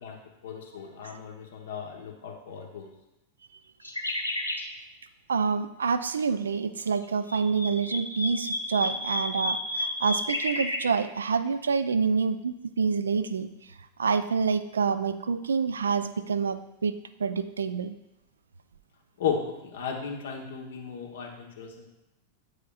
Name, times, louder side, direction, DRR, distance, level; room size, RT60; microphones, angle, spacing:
voice 1, 0.4-2.9 19.2-21.9, left 6 dB, 60° left, 1 dB, 1.0 m, -35 dB
sound 1, 3.8-4.6 7.0-10.8, left 1 dB, 85° left, 0.7 m, -31 dB
voice 2, 5.3-13.5 14.0-16.9 17.2-18.0, right 5 dB, 70° right, 11 dB, 0.3 m, -27 dB
8.9 x 4.9 x 2.4 m, 0.90 s
figure-of-eight pair, 90°, 0 cm